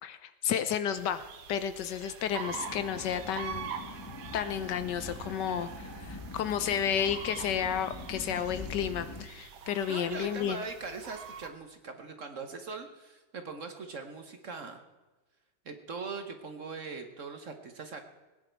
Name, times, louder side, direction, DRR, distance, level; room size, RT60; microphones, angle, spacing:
voice 1, 0.0-3.7 4.3-10.6, left 9 dB, 70° left, 12 dB, 1.2 m, -32 dB
sound 1, 0.9-11.5, right 7 dB, 85° right, 1.8 m, -45 dB
sound 2, 2.4-9.3, left 2 dB, 10° left, 1.0 m, -44 dB
voice 2, 9.9-14.8 15.6-18.0, right 4 dB, 50° right, 6 dB, 1.2 m, -41 dB
18.5 x 10.0 x 4.5 m, 1.2 s
omnidirectional pair, 2.1 m